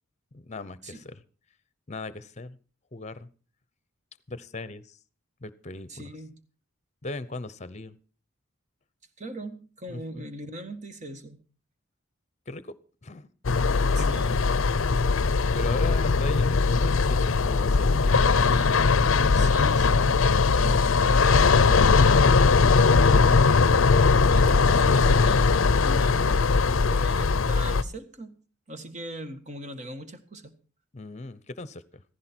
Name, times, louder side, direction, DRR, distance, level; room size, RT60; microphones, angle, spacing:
voice 1, 0.3-1.2 1.9-2.6 2.9-3.3 4.3-5.0 5.4-6.1 7.0-8.0 9.9-10.3 12.5-12.8 13.0-13.3 13.9-14.4 15.5-18.4 30.9-32.0, left 2 dB, 35° left, 16 dB, 0.8 m, -38 dB
voice 2, 5.9-6.4 9.2-11.4 13.9-14.4 18.5-20.1 20.5-23.4 24.1-26.6 26.9-28.4 28.7-30.5, right 1 dB, 35° right, 8 dB, 1.6 m, -40 dB
sound 1, 13.4-27.8, left 4 dB, 70° left, 0.6 m, -20 dB
15.0 x 15.0 x 4.5 m, 0.37 s
head